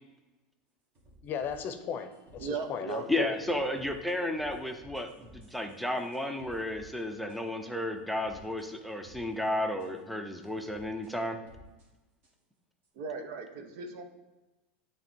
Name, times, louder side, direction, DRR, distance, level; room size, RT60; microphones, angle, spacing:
sound 1, 0.9-2.4 2.9-3.0 3.4-6.9 7.3-7.4 8.2-8.7 9.0-9.5 9.8-9.9 10.6-11.1 11.5-11.9 12.2-12.3 12.8-12.9, equal, 45° right, 2.2 m, -55 dB
voice 1, 1.2-3.3, left 7 dB, 40° left, 9 dB, 0.7 m, -36 dB
voice 2, 2.4-3.0 3.4-3.5 13.0-14.0, right 5 dB, 60° right, 6 dB, 0.9 m, -37 dB
voice 3, 3.1-11.4, left 1 dB, ahead, 5 dB, 0.6 m, -33 dB
8.6 x 3.4 x 4.3 m, 1.1 s
supercardioid pair, 125°, 5 cm